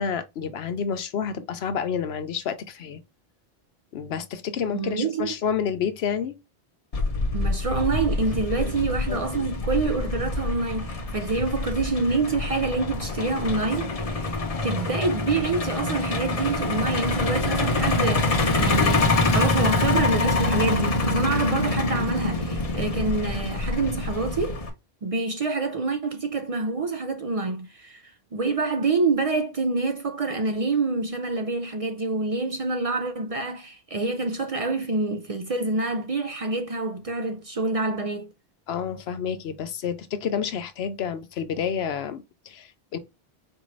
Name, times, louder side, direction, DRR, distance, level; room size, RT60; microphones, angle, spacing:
voice 1, 0.0-3.0 3.9-6.4 8.6-9.5 38.7-43.0, left 7 dB, 90° left, 0.9 m, -29 dB
voice 2, 4.7-5.3 7.3-14.4 14.6-24.7 25.0-38.3, right 3 dB, 45° right, 0.5 m, -27 dB
Truck, 6.9-24.7, left 2 dB, 40° left, 0.8 m, -25 dB
4.5 x 2.6 x 3.1 m
omnidirectional pair, 1.0 m